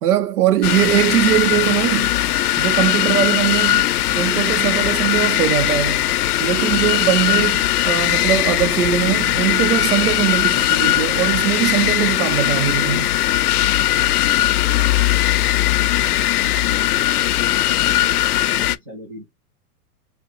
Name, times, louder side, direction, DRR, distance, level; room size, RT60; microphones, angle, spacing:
voice 1, 0.0-2.1 2.6-3.9 4.1-6.1 6.4-13.1, right 12 dB, 70° right, 0.6 m, -20 dB
sound 1, 0.6-18.8, left 14 dB, 75° left, 0.5 m, -19 dB
voice 2, 16.6-18.2 18.6-19.3, equal, 15° right, 0.3 m, -39 dB
5.3 x 2.1 x 2.6 m
hypercardioid pair, 135°, 46 cm